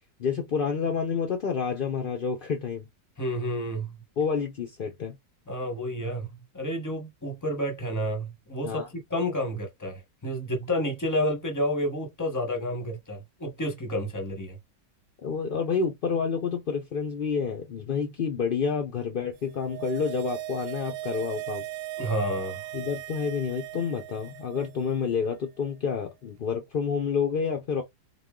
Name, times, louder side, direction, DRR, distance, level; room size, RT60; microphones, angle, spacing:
voice 1, 0.2-2.8 4.2-5.1 8.6-8.9 15.2-21.7 22.7-27.8, left 6 dB, 70° left, 0.5 m, -29 dB
voice 2, 3.2-3.9 5.5-6.3 6.5-14.6 22.0-22.6, equal, 15° left, 0.9 m, -30 dB
sound 1, 19.4-24.9 25.2-25.3, right 14 dB, 70° right, 0.9 m, -38 dB
3.6 x 2.4 x 3.6 m
omnidirectional pair, 1.8 m